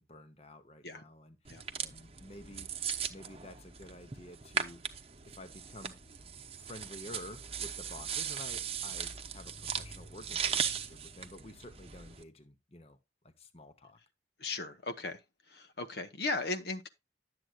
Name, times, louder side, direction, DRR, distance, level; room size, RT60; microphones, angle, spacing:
voice 1, 0.0-2.7 3.1-4.8 5.2-6.0 6.5-13.0 13.2-14.0, left 1 dB, 35° left, 1.0 m, -50 dB
sound 1, 1.5-12.2, right 7 dB, 35° right, 0.9 m, -38 dB
voice 2, 14.4-15.2 15.5-16.9, left 3 dB, 60° left, 1.0 m, -37 dB
12.0 x 7.8 x 2.4 m
head